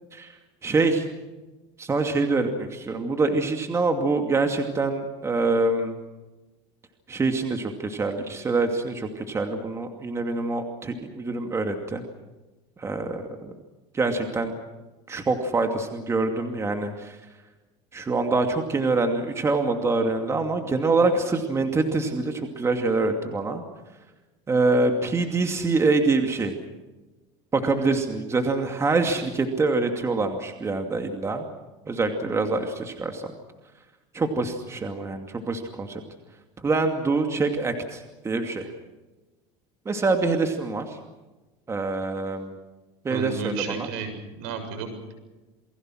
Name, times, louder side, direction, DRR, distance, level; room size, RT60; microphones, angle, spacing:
voice 1, 0.6-1.1 1.8-5.9 7.1-12.0 12.8-13.5 13.9-14.5 15.1-17.2 17.9-23.6 24.5-26.5 27.5-31.4 31.9-33.3 34.1-36.0 36.6-38.7 39.9-41.0 41.7-42.6 43.0-43.9, right 3 dB, 20° right, 4 dB, 2.5 m, -25 dB
voice 2, 43.1-45.1, right 5 dB, 75° right, 8 dB, 7.0 m, -33 dB
28.5 x 22.0 x 6.4 m, 1.1 s
supercardioid pair, 130°, 15 cm